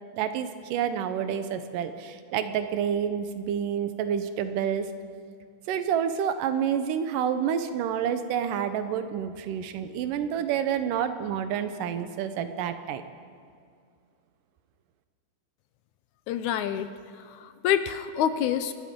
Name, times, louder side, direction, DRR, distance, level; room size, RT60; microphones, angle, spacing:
voice 1, 0.1-4.9 5.7-13.0, right 8 dB, 85° right, 9 dB, 2.5 m, -28 dB
voice 2, 16.3-16.9 17.3-18.7, left 10 dB, 80° left, 10 dB, 1.9 m, -27 dB
26.5 x 12.5 x 3.7 m, 2.3 s
omnidirectional pair, 3.7 m